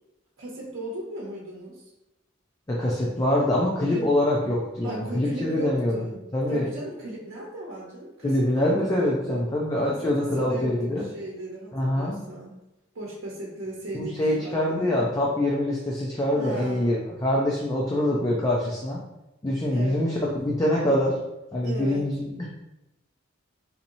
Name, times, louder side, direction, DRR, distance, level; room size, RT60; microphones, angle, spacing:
voice 1, 0.4-1.9 3.9-4.1 4.8-6.2 6.5-9.4 9.9-12.6 12.9-15.0 16.4-17.0 19.7-20.1 21.6-22.1, right 1 dB, 85° right, -4 dB, 0.8 m, -36 dB
voice 2, 2.7-6.0 6.3-6.7 8.2-11.0 11.7-12.2 13.9-19.0 19.4-21.2 21.5-22.5, left 1 dB, 20° left, -4 dB, 0.4 m, -24 dB
4.1 x 2.8 x 2.6 m, 0.93 s
head